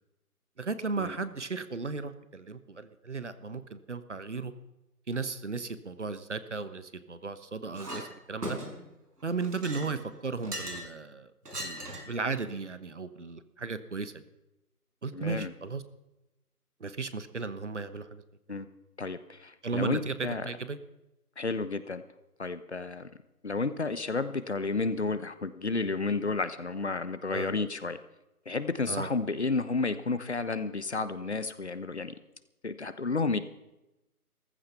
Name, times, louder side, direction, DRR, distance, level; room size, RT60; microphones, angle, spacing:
voice 1, 0.6-4.5 5.1-8.6 9.2-11.3 11.6-14.2 15.0-15.8 16.8-18.2 19.6-20.1 20.4-20.8 27.3-27.5 28.9-29.1, right 4 dB, 50° right, 12 dB, 1.2 m, -35 dB
Chink clink, 7.8-8.1 8.4-8.9 9.4-10.9 11.5-12.2, right 1 dB, 85° right, 5.6 m, -38 dB
voice 2, 15.1-15.5 18.5-18.7 19.0-20.5 21.4-22.0 22.4-23.1 23.4-28.0 28.5-32.1 32.6-33.4, left 3 dB, 45° left, 12 dB, 1.0 m, -31 dB
15.5 x 14.5 x 5.8 m, 0.95 s
figure-of-eight pair, 165°, 46 cm